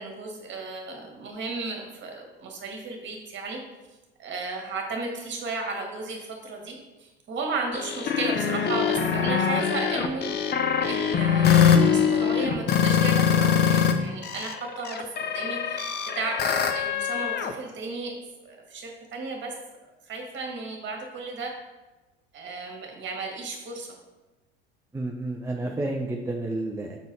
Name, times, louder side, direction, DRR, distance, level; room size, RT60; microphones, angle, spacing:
voice 1, 0.0-3.6 4.2-18.2 18.4-19.5 20.0-21.5 22.3-23.9, right 3 dB, 35° right, 1 dB, 1.7 m, -34 dB
sound 1, 7.7-13.9 14.2-17.5, left 7 dB, 30° left, 0.7 m, -23 dB
voice 2, 24.9-27.0, right 2 dB, 10° right, 1 dB, 0.5 m, -30 dB
6.3 x 3.9 x 4.1 m, 1.1 s
figure-of-eight pair, 70°, 32 cm